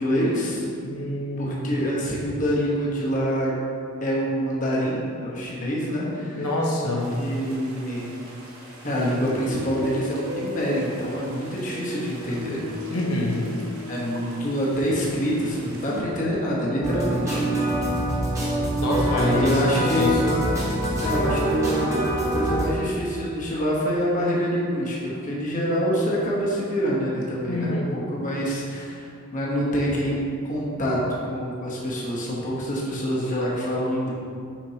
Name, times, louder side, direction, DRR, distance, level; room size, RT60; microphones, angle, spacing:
voice 1, 0.0-0.6 1.4-3.5 4.0-6.5 7.1-8.1 8.8-12.6 13.9-17.4 19.1-20.2 21.0-21.9 22.3-30.2 30.4-34.1, equal, 35° left, -5 dB, 1.0 m, -26 dB
voice 2, 0.8-1.7 6.3-7.1 12.9-13.4 18.8-20.4 27.5-27.9, left 1 dB, 80° left, -3 dB, 0.9 m, -26 dB
sound 1, 7.0-16.0, left 1 dB, 70° right, 1.2 m, -37 dB
sound 2, 16.8-22.7, right 1 dB, 15° right, 1.0 m, -24 dB
7.3 x 5.1 x 2.8 m, 2.4 s
head